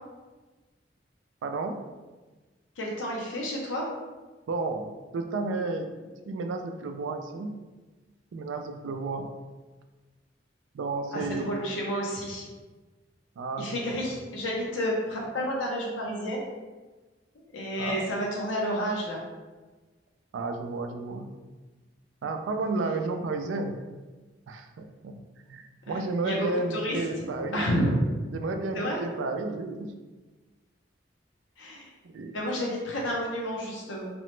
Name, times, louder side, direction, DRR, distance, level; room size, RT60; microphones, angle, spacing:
voice 1, 1.4-1.8 4.5-5.9 6.2-7.6 8.3-9.3 10.7-11.5 13.4-14.0 17.8-18.0 20.3-21.3 22.2-23.8 24.5-25.2 25.5-27.6 28.3-29.9 32.0-32.4, right 3 dB, 85° right, 5 dB, 0.3 m, -32 dB
voice 2, 2.8-3.9 11.1-12.5 13.6-16.5 17.5-19.2 25.9-27.3 27.5-28.0 28.7-29.0 31.6-31.9 32.3-34.1, equal, 75° left, -2 dB, 0.5 m, -30 dB
2.9 x 2.0 x 3.1 m, 1.3 s
head